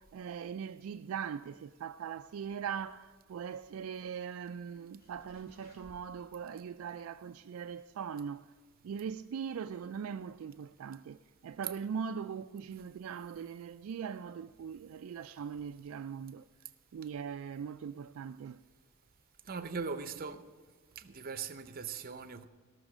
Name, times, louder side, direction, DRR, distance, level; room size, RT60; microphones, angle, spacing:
voice 1, 0.0-8.5 8.8-16.4 16.9-18.6, right 7 dB, 70° right, 0.3 m, -41 dB
sound 1, 2.4-3.3 3.6-3.7 4.1-4.2 4.8-6.6 6.9-7.0 7.6-7.7, equal, 45° left, 2.4 m, -62 dB
voice 2, 19.4-20.4 21.0-22.5, right 5 dB, 45° right, 0.7 m, -40 dB
18.0 x 6.3 x 6.3 m
head